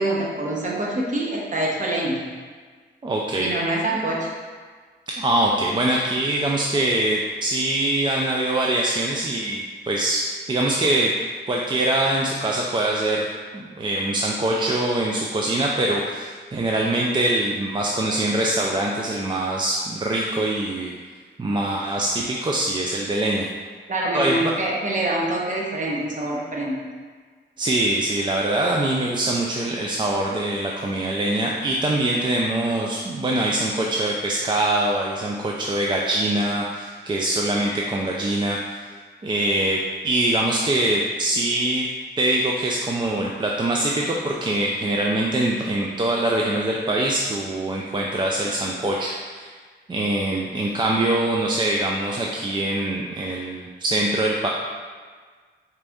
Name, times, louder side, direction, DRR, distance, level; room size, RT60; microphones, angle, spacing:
voice 1, 0.0-2.2 3.4-4.3 23.9-26.8, right 1 dB, 40° right, -3 dB, 0.9 m, -25 dB
voice 2, 3.0-3.5 5.2-11.1 11.5-13.3 13.5-20.9 21.4-23.5 24.1-24.4 27.6-38.9 39.2-41.9 42.2-49.5 49.9-54.5, right 1 dB, 25° right, -2 dB, 0.3 m, -23 dB
4.2 x 2.6 x 3.5 m, 1.5 s
cardioid pair, 95°, 20 cm